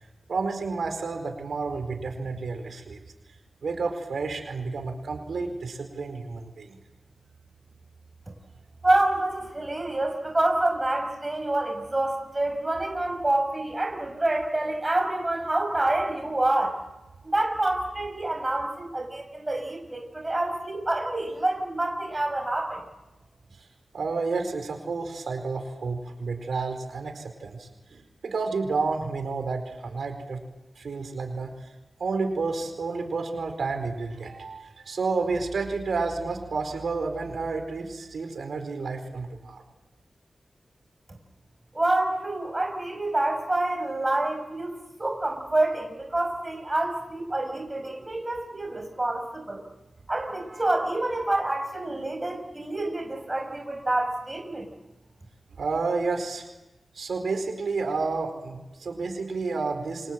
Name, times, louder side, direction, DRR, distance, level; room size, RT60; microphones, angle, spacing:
voice 1, 0.3-3.0 3.6-6.8 23.9-30.4 30.8-31.5 32.0-39.6 55.6-56.5 56.9-60.1, right 4 dB, 80° right, 5 dB, 4.5 m, -30 dB
voice 2, 8.8-16.8 17.2-22.8 41.7-49.6 50.1-54.7, right 2 dB, 20° right, 3 dB, 5.3 m, -27 dB
29.0 x 25.0 x 7.6 m, 1.0 s
wide cardioid pair, 140°, 0 cm